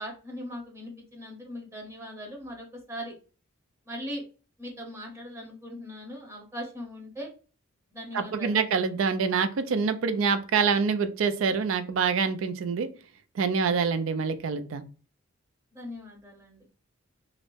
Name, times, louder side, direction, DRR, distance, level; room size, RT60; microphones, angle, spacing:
voice 1, 0.0-3.2 3.9-4.2 4.6-7.3 7.9-8.7 15.7-16.7, equal, 15° right, -1 dB, 0.7 m, -40 dB
voice 2, 8.1-12.9 13.4-14.8, right 5 dB, 70° right, 10 dB, 0.4 m, -26 dB
2.5 x 2.0 x 3.1 m, 0.36 s
head